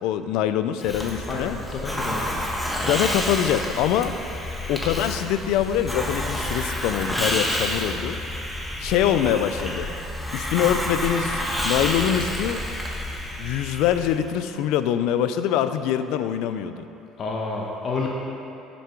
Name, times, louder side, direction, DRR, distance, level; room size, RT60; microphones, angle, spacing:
voice 1, 0.0-1.6 2.8-4.1 4.6-8.2 8.8-9.9 10.3-12.6 13.4-16.8, left 10 dB, 75° left, 10 dB, 0.5 m, -24 dB
Hiss, 0.8-14.3, left 1 dB, 5° left, 1.3 m, -29 dB
voice 2, 1.3-2.3 17.2-18.1, left 3 dB, 45° left, -1 dB, 1.2 m, -29 dB
11.0 x 7.0 x 4.6 m, 2.9 s
supercardioid pair, 95°, 0 cm